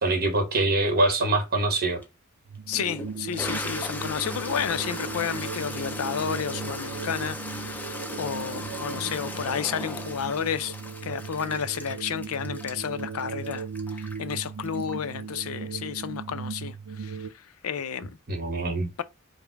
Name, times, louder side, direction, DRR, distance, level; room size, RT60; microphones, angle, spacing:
voice 1, 0.0-2.0 18.3-18.9, right 2 dB, 45° right, 1.3 m, -24 dB
Toilet flush, 2.0-2.1 2.7-15.2, left 2 dB, 10° left, 0.5 m, -37 dB
sound 1, 2.5-17.3, right 5 dB, 70° right, 0.4 m, -37 dB
voice 2, 2.7-10.8 11.0-18.1, left 8 dB, 80° left, 0.5 m, -31 dB
5.1 x 2.1 x 4.6 m
head